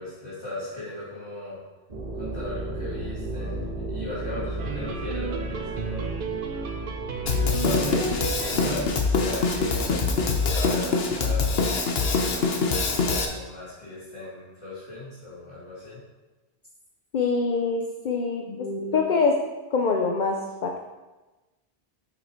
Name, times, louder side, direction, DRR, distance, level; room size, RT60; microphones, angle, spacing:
voice 1, 0.0-1.6 2.1-6.1 7.5-8.0 8.5-16.0, left 2 dB, 30° left, -12 dB, 2.9 m, -37 dB
sound 1, 1.9-10.6, right 1 dB, 40° right, 1.4 m, -35 dB
sound 2, 4.6-9.2, right 5 dB, 60° right, 0.8 m, -34 dB
Drum kit, 7.3-13.3, left 4 dB, 75° left, 1.2 m, -24 dB
voice 2, 17.1-19.4 19.7-20.8, left 4 dB, 50° left, 3 dB, 0.8 m, -25 dB
8.4 x 5.9 x 4.5 m, 1.2 s
omnidirectional pair, 1.0 m